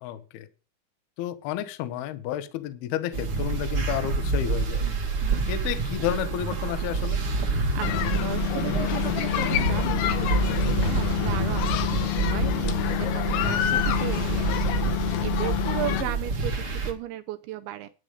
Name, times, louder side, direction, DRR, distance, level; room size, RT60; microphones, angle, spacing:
voice 1, 0.0-0.5 1.2-4.9 5.5-7.2 16.0-16.1, left 11 dB, 70° left, 11 dB, 2.5 m, -31 dB
sound 1, 3.1-16.9, right 3 dB, 55° right, 1.6 m, -27 dB
voice 2, 5.2-5.6 7.4-17.9, right 14 dB, 80° right, 8 dB, 2.7 m, -36 dB
sound 2, 7.8-16.0, left 13 dB, 90° left, 2.2 m, -27 dB
10.0 x 9.8 x 5.2 m, 0.34 s
omnidirectional pair, 5.8 m